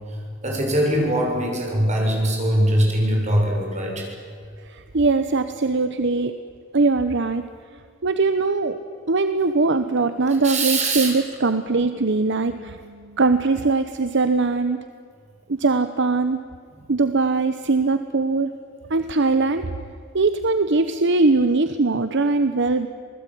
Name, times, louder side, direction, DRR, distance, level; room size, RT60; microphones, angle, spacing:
voice 1, 0.4-4.1 10.4-11.1, right 1 dB, 35° right, 0 dB, 7.1 m, -21 dB
voice 2, 4.6-6.3 6.7-7.4 8.0-8.8 9.1-14.9 15.5-16.4 16.9-18.5 18.9-19.7 20.1-22.9, right 3 dB, 60° right, 10 dB, 1.0 m, -21 dB
27.0 x 19.5 x 9.4 m, 2.3 s
head